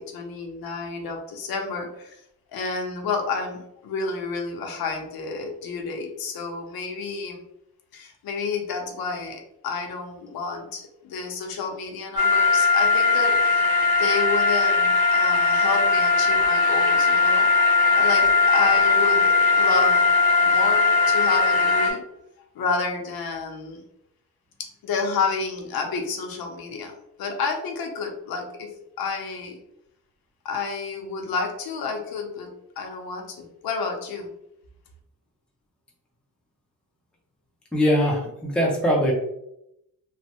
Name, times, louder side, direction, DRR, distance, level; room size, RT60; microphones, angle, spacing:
voice 1, 0.0-2.2 2.5-7.4 7.9-13.6 14.0-17.5 17.9-20.1 20.3-22.0 22.5-23.8 24.8-29.6 30.4-32.5 32.8-34.3, left 4 dB, 75° left, 3 dB, 0.7 m, -30 dB
sound 1, 12.2-21.9, left 4 dB, 90° right, 1.0 m, -19 dB
voice 2, 37.7-39.1, equal, 5° left, -2 dB, 0.4 m, -21 dB
3.1 x 2.0 x 2.8 m, 0.80 s
wide cardioid pair, 170°, 36 cm